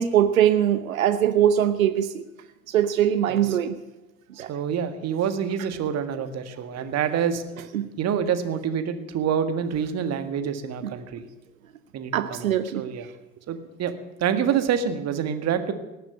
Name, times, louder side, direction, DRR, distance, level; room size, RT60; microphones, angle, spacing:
voice 1, 0.0-2.2 2.7-3.8 4.4-4.5 7.7-7.9 12.1-12.8, right 10 dB, 75° right, 11 dB, 0.9 m, -21 dB
voice 2, 4.3-7.4 8.0-11.2 11.9-13.1 13.5-13.9 14.2-15.7, right 8 dB, 40° right, 9 dB, 1.7 m, -27 dB
18.5 x 7.4 x 9.6 m, 1.0 s
figure-of-eight pair, 70°, 41 cm